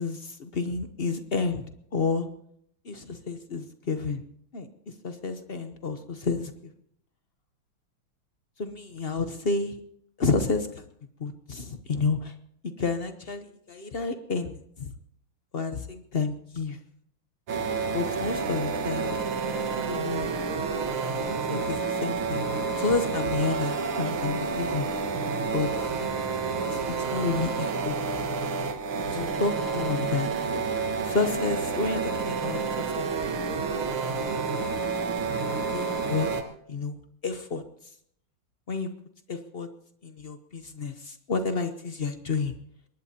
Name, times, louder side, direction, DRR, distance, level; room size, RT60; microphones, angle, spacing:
voice 1, 0.0-1.7 1.9-2.3 2.8-4.2 4.5-4.7 5.0-6.7 8.6-9.8 10.2-10.8 11.2-12.3 12.6-14.9 15.5-16.8 17.9-19.2 19.7-20.4 21.2-22.4 22.8-24.9 25.5-25.7 26.7-26.8 27.1-28.0 29.0-30.6 31.0-33.4 34.2-34.8 35.7-36.3 36.7-37.0 37.2-37.6 38.7-38.9 39.3-39.7 40.0-42.5, left 4 dB, 55° left, 8 dB, 0.6 m, -30 dB
sound 1, 17.5-36.4, right 4 dB, 85° right, 2.3 m, -29 dB
23.0 x 19.5 x 2.8 m, 0.69 s
omnidirectional pair, 2.3 m